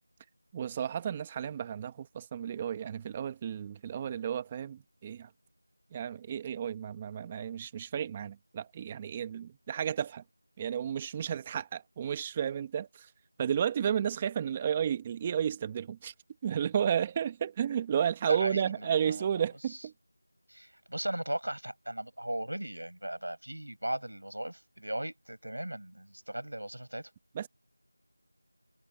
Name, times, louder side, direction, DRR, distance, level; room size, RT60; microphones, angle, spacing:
voice 1, 0.5-5.3 5.9-10.2 10.6-13.1 13.4-16.1 16.4-19.9 27.3-27.5, right 8 dB, 10° right, 1.4 m, -32 dB
voice 2, 18.3-19.3 20.5-27.1, right 1 dB, 85° right, 7.0 m, -37 dB
figure-of-eight pair, 175°, 0 cm